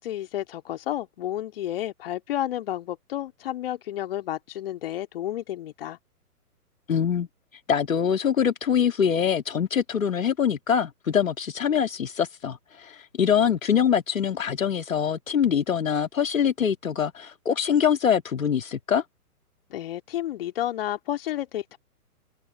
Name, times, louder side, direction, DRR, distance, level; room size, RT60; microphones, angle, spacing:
voice 1, 0.0-6.0 19.7-21.8, left 12 dB, 40° left, 2.6 m, -31 dB
voice 2, 6.9-7.3 7.7-19.0, left 8 dB, 60° left, 1.9 m, -24 dB
open air
figure-of-eight pair, 130°, 45 cm